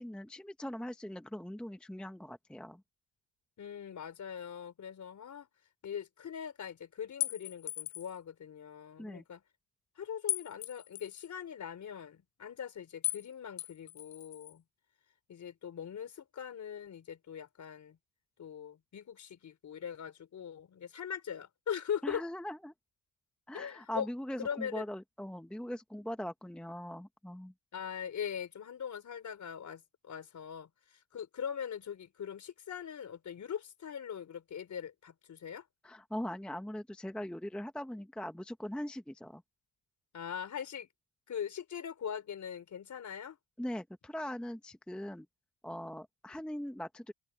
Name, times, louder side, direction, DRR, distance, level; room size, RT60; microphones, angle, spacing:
voice 1, 0.0-2.8 9.0-9.2 22.0-22.7 23.5-27.5 35.8-39.4 43.6-45.3 45.6-47.1, equal, ahead, 0.8 m, -41 dB
voice 2, 3.6-5.5 5.8-9.4 10.0-14.6 15.3-18.0 18.4-22.2 23.5-24.1 24.4-24.8 27.7-35.7 40.1-40.9 41.3-43.4, left 8 dB, 45° left, 4.1 m, -41 dB
sound 1, 7.2-8.2 10.3-11.3 13.0-13.3 13.6-14.5, left 15 dB, 65° left, 0.7 m, -37 dB
open air
cardioid pair, 145°, 41 cm